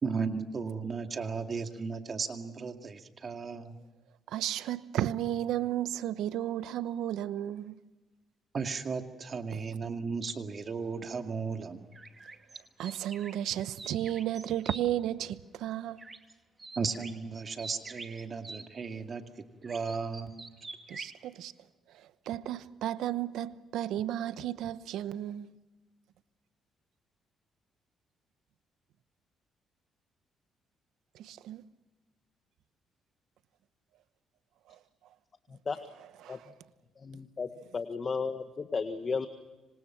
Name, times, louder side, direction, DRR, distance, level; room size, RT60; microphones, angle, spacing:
voice 1, 0.0-3.8 8.5-11.9 16.8-19.2 19.6-20.3, right 5 dB, 45° right, 2.2 m, -35 dB
voice 2, 4.3-7.8 12.8-16.0 20.9-21.5 21.9-25.5 31.1-31.6 34.7-34.8 36.2-36.5, right 12 dB, 85° right, 1.0 m, -33 dB
sound 1, 11.9-14.8 16.0-16.3 16.6-18.7 19.6-21.2, right 3 dB, 25° right, 2.7 m, -46 dB
voice 3, 37.0-39.3, left 5 dB, 40° left, 1.7 m, -34 dB
26.5 x 26.0 x 5.9 m
cardioid pair, 90°, 0 cm